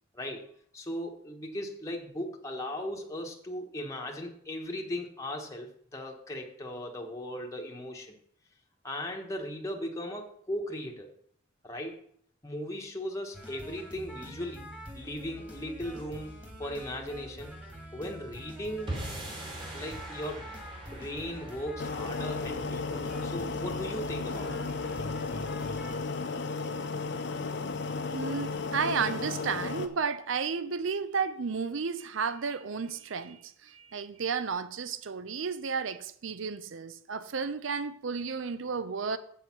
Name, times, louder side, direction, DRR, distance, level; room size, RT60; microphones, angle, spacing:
voice 1, 0.1-0.5 0.7-8.2 8.8-11.1 11.6-12.0 12.4-14.7 14.9-17.6 17.9-18.9 19.7-20.5 20.9-24.6, equal, 15° left, 1.2 m, -37 dB
sound 1, 13.3-26.0, equal, 5° right, 2.0 m, -45 dB
sound 2, 18.9-25.2, right 1 dB, 25° right, 2.4 m, -43 dB
sound 3, 21.8-29.9, left 4 dB, 60° left, 0.8 m, -34 dB
voice 2, 28.1-39.2, right 5 dB, 70° right, 0.6 m, -32 dB
8.0 x 6.4 x 5.9 m
head